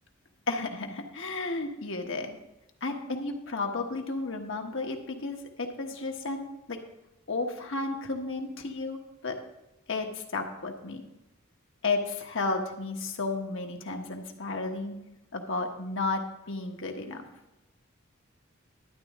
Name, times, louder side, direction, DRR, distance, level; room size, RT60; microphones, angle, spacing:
voice 1, 0.5-2.4 2.8-6.8 7.3-9.0 9.2-9.4 9.9-11.0 11.8-15.0 15.3-17.2, left 3 dB, 65° left, 3 dB, 1.2 m, -33 dB
11.5 x 9.0 x 3.6 m, 0.94 s
head